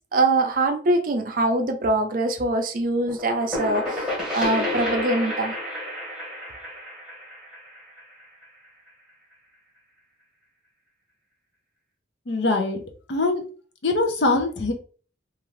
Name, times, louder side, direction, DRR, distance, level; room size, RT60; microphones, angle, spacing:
voice 1, 0.0-4.1 4.3-5.5, right 2 dB, 45° right, 0.4 m, -23 dB
sound 1, 3.1-8.6, left 1 dB, 5° right, 0.9 m, -30 dB
voice 2, 12.3-12.8 13.1-13.4 13.8-14.7, left 2 dB, 65° left, 0.6 m, -22 dB
2.7 x 2.4 x 3.1 m
head